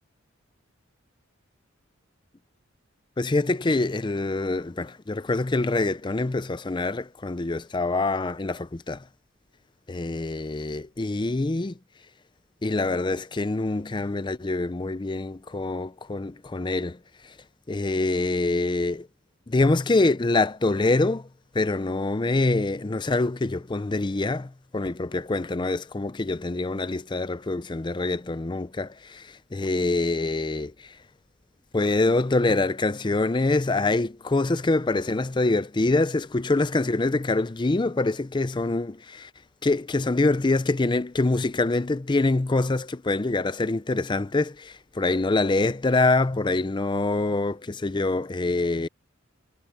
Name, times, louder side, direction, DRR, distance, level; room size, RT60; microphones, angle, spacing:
voice 1, 3.2-9.0 9.9-11.8 12.6-17.3 17.7-19.1 19.5-21.3 21.5-31.0 31.7-39.3 39.6-48.9, left 2 dB, 20° left, 0.5 m, -25 dB
head